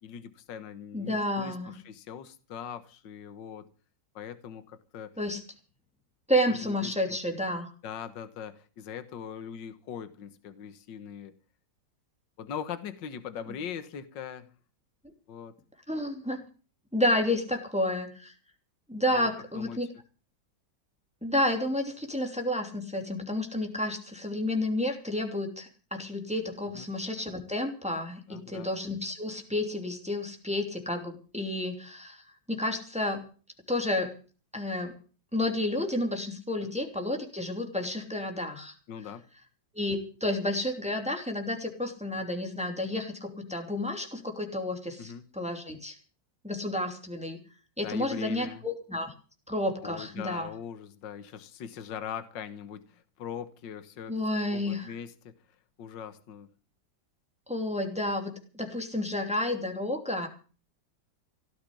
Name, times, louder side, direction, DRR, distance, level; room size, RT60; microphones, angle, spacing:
voice 1, 0.0-3.7 4.2-5.1 6.5-7.2 7.8-11.3 12.4-14.5 15.3-15.5 19.1-19.3 19.6-19.8 26.7-26.9 28.3-28.7 36.6-36.7 38.9-39.2 45.0-45.2 47.8-48.6 49.8-54.2 54.5-55.3 55.8-56.5, left 8 dB, 70° left, 12 dB, 1.9 m, -41 dB
voice 2, 0.9-1.7 5.2-5.4 6.3-7.7 15.0-15.1 15.9-16.4 16.9-18.3 18.9-19.9 21.2-32.2 32.5-33.2 33.7-34.2 34.5-34.9 35.3-38.7 39.7-46.0 46.4-47.4 47.8-49.1 49.5-50.5 54.1-54.9 57.5-60.3, left 1 dB, 5° right, 4 dB, 2.8 m, -31 dB
17.0 x 6.7 x 10.0 m, 0.38 s
omnidirectional pair, 2.1 m